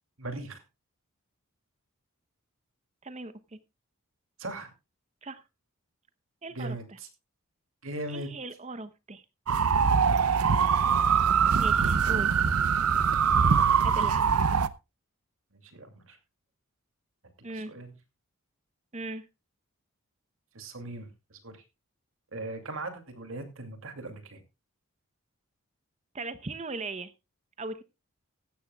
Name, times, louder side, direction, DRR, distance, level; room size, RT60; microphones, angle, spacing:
voice 1, 0.2-0.6 4.4-4.7 6.5-7.1 7.8-8.3 9.8-10.2 15.5-16.2 17.5-17.9 20.5-21.6 22.3-24.4, right 2 dB, 65° right, 7 dB, 2.5 m, -39 dB
voice 2, 3.0-3.3 5.2-5.4 6.4-6.8 8.1-9.2 11.6-12.3 13.8-14.3 17.4-17.7 18.9-19.3 26.1-27.1 27.6-27.8, right 2 dB, 30° right, 13 dB, 0.8 m, -38 dB
sound 1, 9.5-14.7, right 6 dB, 85° right, 0.7 m, -23 dB
15.5 x 13.0 x 2.3 m, 0.26 s
head